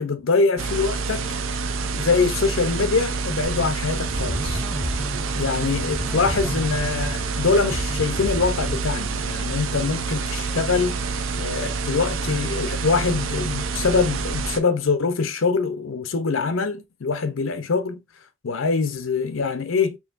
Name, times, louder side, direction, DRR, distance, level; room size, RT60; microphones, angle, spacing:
voice 1, 0.0-1.4 1.9-4.6 5.3-11.0 11.4-18.0 18.4-20.0, left 4 dB, 80° left, 0.6 m, -24 dB
sound 1, 0.6-14.6, right 4 dB, 80° right, 0.5 m, -27 dB
sound 2, 3.4-9.3, left 1 dB, 5° left, 0.4 m, -33 dB
4.6 x 3.1 x 2.5 m
head